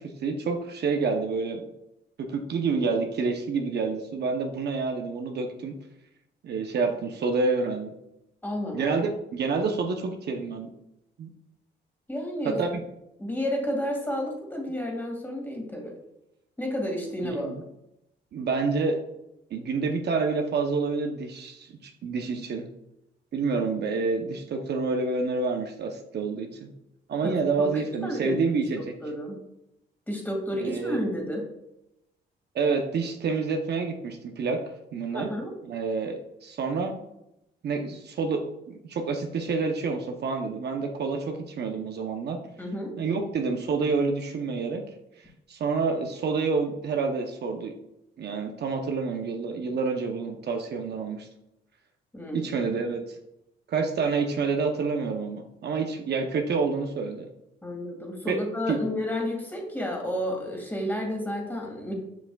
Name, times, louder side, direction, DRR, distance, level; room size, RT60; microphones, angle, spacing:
voice 1, 0.0-1.6 2.2-5.7 6.4-7.9 8.7-10.7 11.2-11.3 12.4-12.8 17.2-17.6 18.3-19.0 19.5-22.7 23.3-26.7 27.1-28.9 30.5-31.0 32.5-34.6 34.9-35.3 35.7-36.9 37.6-42.4 43.0-44.8 45.2-47.7 48.2-51.3 52.3-53.2 53.7-57.3 58.3-58.4 58.7-58.8, right 4 dB, 55° right, 3 dB, 0.8 m, -28 dB
voice 2, 8.4-8.9 12.1-12.8 13.2-15.9 16.6-17.5 27.2-27.4 27.7-28.4 29.0-29.4 30.1-31.4 35.1-35.5 42.6-42.9 52.1-52.5 57.6-61.9, equal, 10° left, 0 dB, 2.0 m, -31 dB
7.2 x 5.8 x 2.3 m, 0.86 s
cardioid pair, 90°, 20 cm